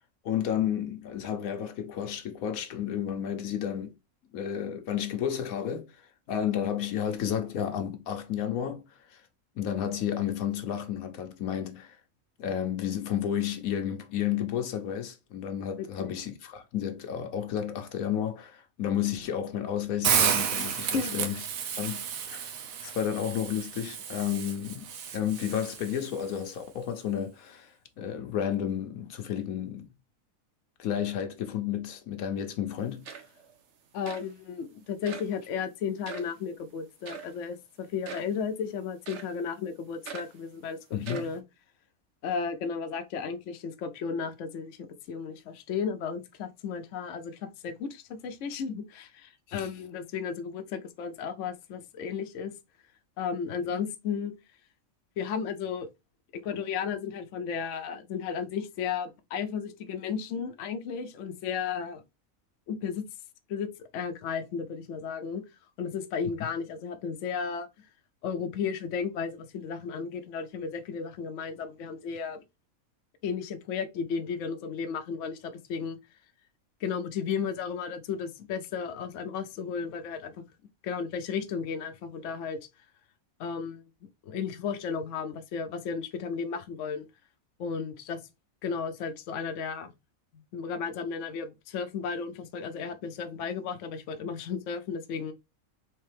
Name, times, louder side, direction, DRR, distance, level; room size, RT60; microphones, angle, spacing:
voice 1, 0.2-3.9 4.3-5.9 6.3-9.2 9.6-12.0 12.4-21.4 21.8-22.5 22.8-29.9 30.8-33.1 40.9-41.3 49.5-49.7 66.4-66.5, left 9 dB, 80° left, 1.2 m, -32 dB
voice 2, 15.8-16.1 20.9-21.2 33.9-40.8 41.1-41.4 42.2-52.5 53.2-54.3 55.2-55.9 56.3-62.0 62.7-63.0 63.5-65.4 65.8-67.7 68.2-72.4 73.2-76.0 76.8-80.3 80.8-82.6 83.4-83.8 84.2-87.1 87.6-88.2 88.6-89.9 90.5-95.3, left 6 dB, 65° left, 0.9 m, -34 dB
Hiss, 20.0-26.1, right 7 dB, 80° right, 1.2 m, -31 dB
sound 1, 32.7-32.8 33.0-33.5 34.1-34.3 35.1-35.4 36.0-36.3 37.1-37.4 38.0-38.4 39.1-39.4 40.1-40.4 41.0-41.4, right 7 dB, 60° right, 1.0 m, -42 dB
4.4 x 3.3 x 3.3 m
omnidirectional pair, 1.5 m